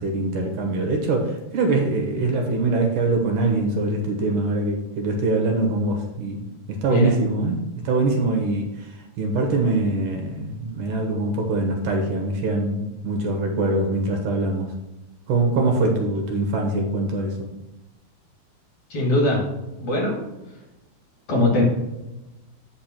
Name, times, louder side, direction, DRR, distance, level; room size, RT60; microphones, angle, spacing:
voice 1, 0.0-14.7 15.3-17.5, right 2 dB, 70° right, 2 dB, 2.5 m, -23 dB
voice 2, 18.9-19.4 19.8-20.2 21.3-21.6, left 2 dB, 45° left, -3 dB, 2.6 m, -20 dB
8.5 x 5.5 x 4.4 m, 1.0 s
omnidirectional pair, 4.1 m